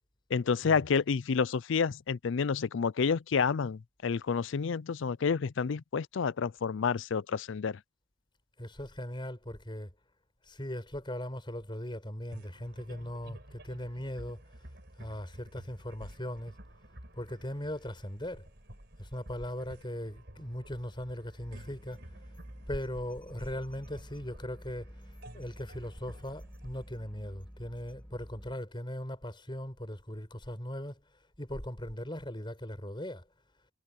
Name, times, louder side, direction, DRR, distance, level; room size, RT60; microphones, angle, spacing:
voice 1, 0.3-7.8, left 5 dB, 65° left, 0.4 m, -29 dB
voice 2, 8.6-9.9 10.5-14.4 15.0-16.5 17.1-18.5 19.0-22.0 22.7-24.9 25.3-31.0 31.4-33.2, equal, 25° left, 5.2 m, -39 dB
sound 1, 12.3-28.0, right 1 dB, 55° right, 4.7 m, -52 dB
sound 2, 21.4-28.6, equal, 5° left, 3.8 m, -50 dB
head